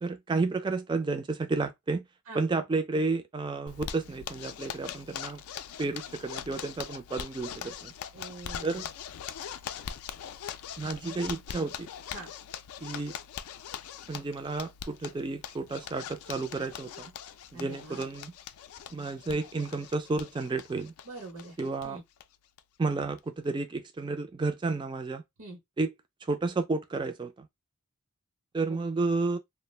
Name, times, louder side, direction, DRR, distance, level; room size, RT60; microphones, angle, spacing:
voice 1, 0.0-2.0 2.3-5.4 5.8-7.9 8.6-8.9 10.8-11.9 12.8-13.1 14.1-17.1 17.5-18.3 18.9-20.9 21.6-22.0 22.8-25.2 25.8-25.9 26.2-27.5 28.5-29.4, right 3 dB, 20° right, 0.3 m, -31 dB
Zipper (clothing), 3.7-21.9 22.2-22.3 22.6-22.7 23.0-23.4, left 8 dB, 75° left, 0.3 m, -42 dB
voice 2, 8.1-8.9 12.1-12.3 17.5-18.0 21.0-21.6 21.8-22.0 25.4-25.6 28.7-29.0, right 2 dB, 75° right, 0.8 m, -44 dB
2.3 x 2.0 x 3.2 m
head